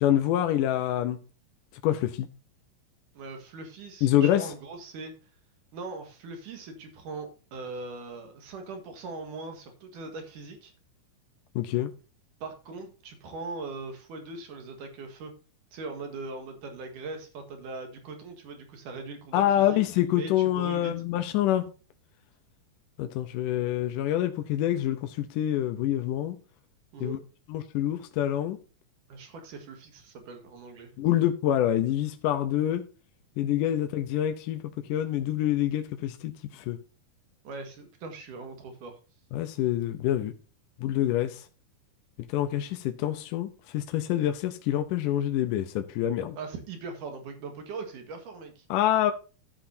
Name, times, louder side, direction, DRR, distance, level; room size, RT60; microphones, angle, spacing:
voice 1, 0.0-1.2 1.8-2.3 4.0-4.4 11.6-11.9 19.3-21.7 23.0-26.4 27.0-27.2 27.5-28.6 31.0-32.8 33.4-34.6 34.9-36.8 39.3-40.3 40.8-41.4 42.3-43.5 43.7-46.4 48.7-49.1, left 12 dB, 75° left, 2.3 m, -26 dB
voice 2, 3.1-5.1 5.7-10.7 12.4-15.3 15.7-20.9 26.9-27.2 29.1-30.9 37.4-39.0 46.4-48.7, right 3 dB, 70° right, 3.2 m, -40 dB
12.5 x 8.6 x 2.7 m
omnidirectional pair, 3.9 m